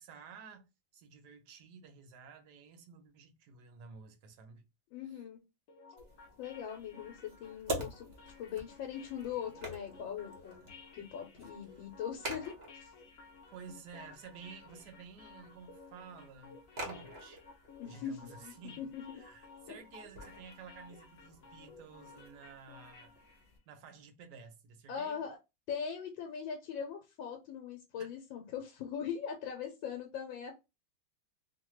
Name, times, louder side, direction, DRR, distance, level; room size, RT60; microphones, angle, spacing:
voice 1, 0.0-4.6 5.1-5.2 11.8-11.9 13.5-17.4 17.8-18.9 19.1-23.2 23.7-25.2 28.0-28.1, right 5 dB, 70° right, 1.1 m, -52 dB
voice 2, 4.9-5.4 6.4-8.1 8.4-10.7 10.9-12.9 17.8-19.2 19.7-19.8 24.9-25.4 25.7-30.5, left 8 dB, 85° left, 1.4 m, -41 dB
sound 1, 5.7-23.5, left 4 dB, 60° left, 0.9 m, -56 dB
sound 2, 6.0-23.6, right 1 dB, 55° right, 0.7 m, -48 dB
3.2 x 2.2 x 3.0 m
omnidirectional pair, 2.1 m